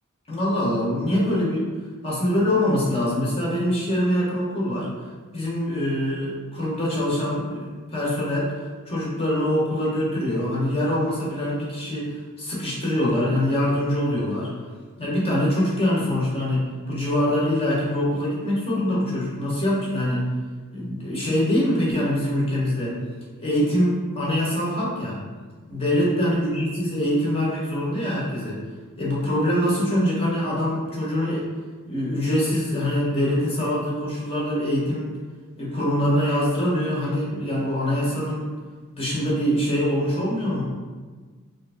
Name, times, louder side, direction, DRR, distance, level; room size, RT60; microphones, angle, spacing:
voice 1, 0.3-1.7 2.0-4.9 5.3-12.1 12.4-14.5 15.0-20.3 20.7-22.9 23.4-25.2 25.7-28.6 29.0-31.4 31.9-35.1 35.6-38.5 38.9-40.6, left 1 dB, 25° left, -6 dB, 0.8 m, -24 dB
2.9 x 2.5 x 3.4 m, 1.4 s
head